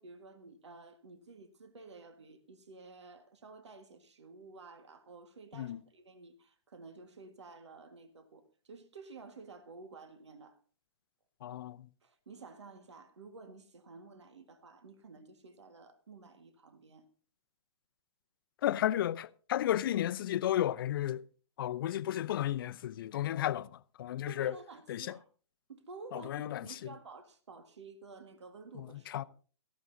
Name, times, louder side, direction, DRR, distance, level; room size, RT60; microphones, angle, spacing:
voice 1, 0.0-10.6 12.0-17.1 24.3-25.3 25.7-29.2, right 4 dB, 80° right, 1.6 m, -52 dB
voice 2, 11.4-11.9 18.6-21.2 21.6-24.5 24.9-25.2 26.1-26.6 28.8-29.2, left 12 dB, 50° left, 0.6 m, -33 dB
18.0 x 14.5 x 2.7 m
hypercardioid pair, 135°, 15 cm